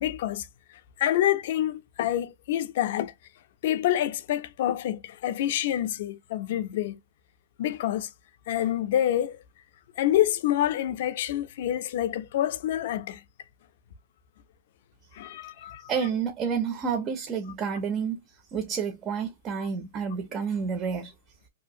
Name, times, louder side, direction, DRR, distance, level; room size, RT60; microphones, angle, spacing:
voice 1, 0.0-3.1 3.6-7.0 7.6-8.1 8.5-9.4 10.0-13.2 15.1-15.9, left 12 dB, 50° left, 0.4 m, -27 dB
voice 2, 15.9-18.2 18.5-21.1, right 6 dB, 20° right, 0.4 m, -29 dB
2.6 x 2.4 x 2.7 m
supercardioid pair, 170°, 0 cm